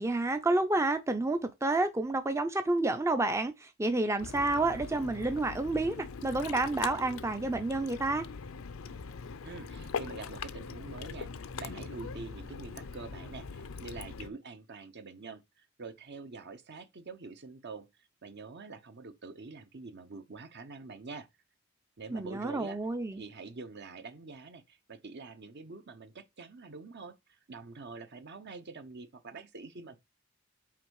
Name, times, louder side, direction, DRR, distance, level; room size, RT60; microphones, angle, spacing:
voice 1, 0.0-8.3 22.1-23.2, right 2 dB, 15° right, 0.5 m, -29 dB
Ocean, 4.2-14.3, left 5 dB, 85° left, 0.6 m, -41 dB
voice 2, 9.4-17.9 18.2-21.3 22.0-22.8 23.1-30.0, right 3 dB, 55° right, 0.9 m, -46 dB
5.8 x 4.4 x 4.7 m
head